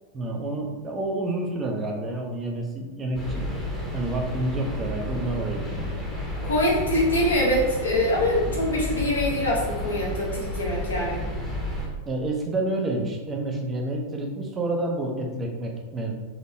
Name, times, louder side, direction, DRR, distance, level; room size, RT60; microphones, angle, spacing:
voice 1, 0.1-3.5 3.9-5.9 12.1-16.2, right 2 dB, 20° right, 2 dB, 0.6 m, -29 dB
sound 1, 3.1-11.9, left 1 dB, ahead, 0.9 m, -31 dB
voice 2, 6.4-11.2, left 1 dB, 75° left, -4 dB, 1.1 m, -24 dB
4.2 x 3.0 x 2.8 m, 1.3 s
figure-of-eight pair, 90°, 0 cm